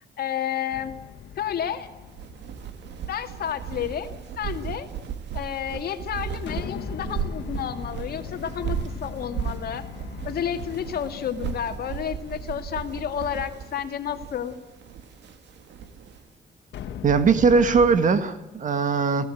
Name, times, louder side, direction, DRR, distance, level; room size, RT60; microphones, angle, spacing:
voice 1, 0.2-0.9 1.4-1.9 3.1-4.1 4.4-4.9 5.3-9.8 10.2-14.5, left 9 dB, 60° left, 7 dB, 2.2 m, -31 dB
sound 1, 0.7-3.3 6.5-13.7 16.7-17.9, left 9 dB, 80° left, 2.0 m, -40 dB
sound 2, 2.0-16.2, right 7 dB, 80° right, 2.2 m, -35 dB
voice 2, 17.0-19.3, right 5 dB, 45° right, 11 dB, 1.9 m, -20 dB
28.5 x 16.5 x 9.2 m, 1.1 s
cardioid pair, 145°, 18 cm